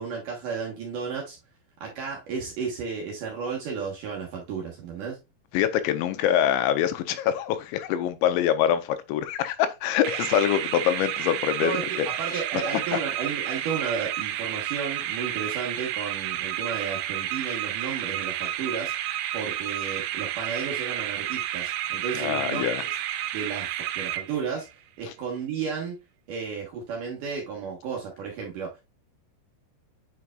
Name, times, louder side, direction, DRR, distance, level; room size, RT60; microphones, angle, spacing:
voice 1, 0.0-1.4 1.8-5.2 11.6-18.9 19.3-22.7 23.3-23.7 24.0-26.0 26.3-28.7, right 6 dB, 65° right, 2.1 m, -33 dB
voice 2, 5.5-12.1 12.9-13.0 22.1-22.8, left 10 dB, 90° left, 2.9 m, -25 dB
sound 1, 10.0-24.7, right 12 dB, 85° right, 2.9 m, -31 dB
8.7 x 4.7 x 2.3 m
omnidirectional pair, 5.2 m